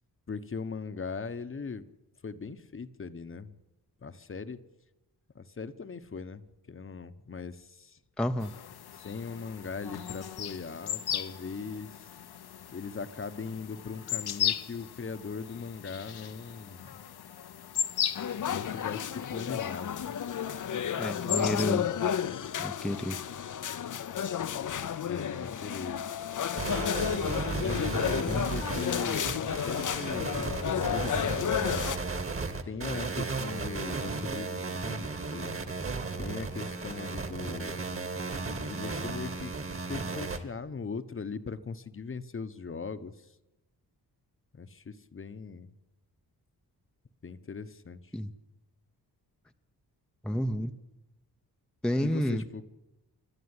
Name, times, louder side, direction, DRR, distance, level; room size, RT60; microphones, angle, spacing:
voice 1, 0.3-1.9 2.2-3.5 4.0-4.6 5.3-8.0 8.9-12.1 12.7-17.0 18.4-20.1 21.4-22.0 25.0-26.1 27.6-31.8 32.6-35.6 36.2-37.8 38.6-39.5 39.9-43.3 44.5-45.7 47.2-48.0 52.0-52.7, left 5 dB, 35° left, 11 dB, 1.0 m, -40 dB
voice 2, 8.2-8.5 21.0-21.8 22.6-23.2 28.3-28.5 48.1-48.3 50.2-50.7 51.8-52.4, equal, ahead, 6 dB, 0.7 m, -30 dB
sound 1, 8.4-21.6, left 9 dB, 70° left, 1.0 m, -37 dB
sound 2, 18.1-32.0, left 9 dB, 50° left, 0.7 m, -32 dB
sound 3, 26.6-40.4, right 3 dB, 35° right, 2.0 m, -34 dB
26.5 x 12.5 x 9.7 m, 0.97 s
wide cardioid pair, 140°, 39 cm